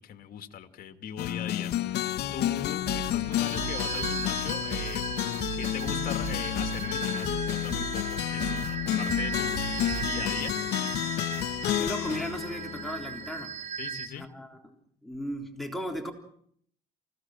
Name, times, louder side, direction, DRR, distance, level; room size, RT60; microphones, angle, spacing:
voice 1, 0.0-1.7 2.3-5.1 5.6-8.5 9.0-9.7 10.0-10.5 13.8-14.3, left 8 dB, 60° left, 7 dB, 2.4 m, -39 dB
sound 1, 1.2-13.4, left 13 dB, 75° left, 1.2 m, -31 dB
sound 2, 2.9-14.1, right 6 dB, 40° right, 3.7 m, -37 dB
sound 3, 2.9-10.2, right 3 dB, 70° right, 4.8 m, -39 dB
voice 2, 11.6-13.6 14.2-14.7 15.0-16.1, equal, ahead, 3 dB, 3.5 m, -36 dB
28.5 x 17.0 x 7.6 m, 0.65 s
cardioid pair, 110°, 17 cm